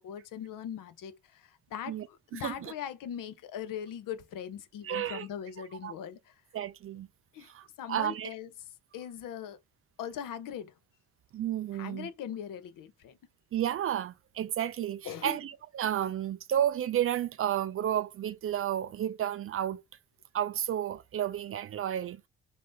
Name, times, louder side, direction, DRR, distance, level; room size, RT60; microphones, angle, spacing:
voice 1, 0.0-6.2 7.3-7.5 7.8-8.5 8.9-9.6 10.0-10.7 11.7-13.1 15.0-15.4, left 9 dB, 45° left, 0.7 m, -40 dB
voice 2, 2.3-2.7 4.8-5.3 5.8-5.9 6.5-7.1 7.4-8.3 11.3-12.1 13.5-19.8 20.3-22.3, right 11 dB, 30° right, 0.4 m, -32 dB
3.0 x 2.7 x 3.5 m
figure-of-eight pair, 45°, 44 cm